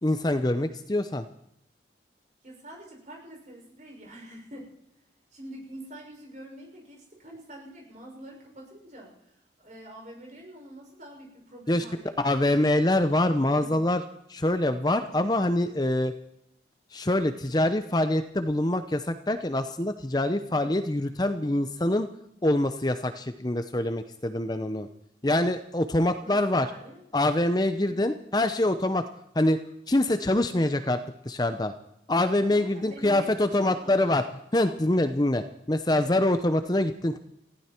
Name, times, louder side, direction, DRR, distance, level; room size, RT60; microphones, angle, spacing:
voice 1, 0.0-1.2 11.7-11.8 12.2-14.0 14.3-16.1 16.9-22.1 22.4-24.9 25.2-26.7 27.1-29.0 29.3-29.6 29.9-31.0 31.2-31.7 32.1-34.2 34.5-37.2, left 1 dB, 20° left, 9 dB, 0.7 m, -25 dB
voice 2, 2.4-4.7 5.3-12.4 13.4-13.8 26.2-27.0 27.8-28.2 32.5-33.3 33.6-34.3, right 1 dB, 40° right, 0 dB, 6.3 m, -46 dB
20.0 x 15.5 x 4.5 m, 0.75 s
head